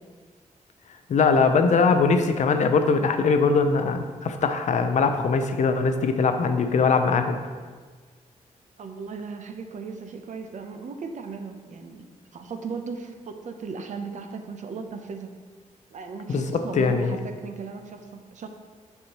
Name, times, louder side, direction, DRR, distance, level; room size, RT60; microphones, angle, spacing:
voice 1, 1.1-7.5 16.3-17.2, left 4 dB, 65° left, 7 dB, 0.6 m, -21 dB
voice 2, 8.8-15.3 15.9-18.5, right 5 dB, 65° right, 6 dB, 0.7 m, -37 dB
7.9 x 5.6 x 2.9 m, 1.5 s
cardioid pair, 105°, 13 cm